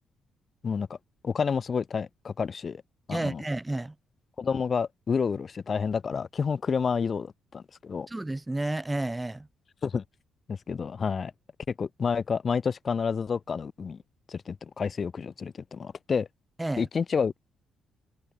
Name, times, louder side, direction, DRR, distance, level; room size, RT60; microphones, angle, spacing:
voice 1, 0.6-1.0 1.2-2.8 3.1-3.4 4.4-8.1 9.8-10.0 10.5-11.3 11.7-14.0 14.3-16.3 16.8-17.3, left 6 dB, 30° left, 0.5 m, -29 dB
voice 2, 3.1-3.9 8.1-9.5 16.6-16.8, right 2 dB, 10° right, 0.8 m, -31 dB
cardioid pair, 170°, 0 cm